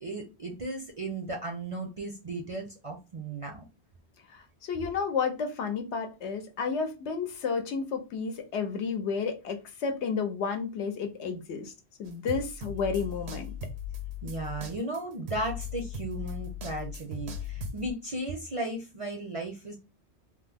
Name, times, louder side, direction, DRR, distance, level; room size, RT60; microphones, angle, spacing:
voice 1, 0.0-3.6 14.2-19.7, right 2 dB, 40° right, 0.5 m, -35 dB
voice 2, 4.3-11.7 12.0-13.5, left 5 dB, 75° left, 1.0 m, -31 dB
sound 1, 12.1-17.9, left 5 dB, 75° right, 0.9 m, -38 dB
3.0 x 2.0 x 3.4 m
omnidirectional pair, 1.2 m